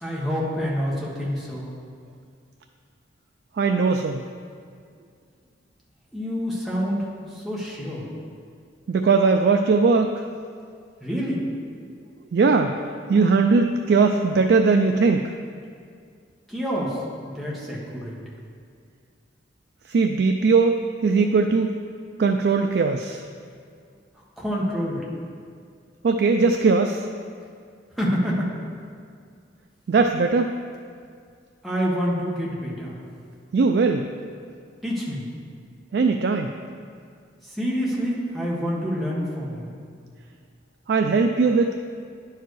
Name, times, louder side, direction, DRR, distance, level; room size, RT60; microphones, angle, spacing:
voice 1, 0.0-1.6 6.1-8.0 11.0-11.4 16.5-17.0 17.3-18.2 24.4-25.0 28.0-28.5 31.6-32.9 34.8-35.2 37.4-39.7, equal, ahead, -6 dB, 1.4 m, -27 dB
voice 2, 3.6-4.2 8.9-10.2 12.3-12.8 13.1-15.3 19.9-21.7 22.2-23.2 26.0-27.1 29.9-30.5 33.5-34.1 35.9-36.5 40.9-41.8, right 4 dB, 60° right, 5 dB, 0.3 m, -19 dB
10.0 x 4.7 x 4.7 m, 2.2 s
head